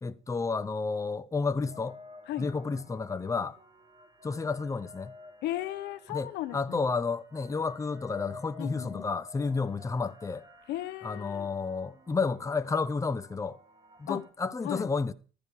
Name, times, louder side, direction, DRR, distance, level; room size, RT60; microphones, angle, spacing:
voice 1, 0.0-2.0 2.4-3.6 4.2-5.1 6.1-10.4 11.0-13.6 14.0-15.1, left 4 dB, 20° left, 0.9 m, -31 dB
sound 1, 1.6-14.3, left 2 dB, 25° right, 3.6 m, -52 dB
voice 2, 5.4-6.8 8.6-9.1 10.7-11.5 14.1-14.2 14.6-14.9, left 14 dB, 80° left, 1.4 m, -36 dB
14.5 x 12.0 x 4.9 m
cardioid pair, 110°, 17 cm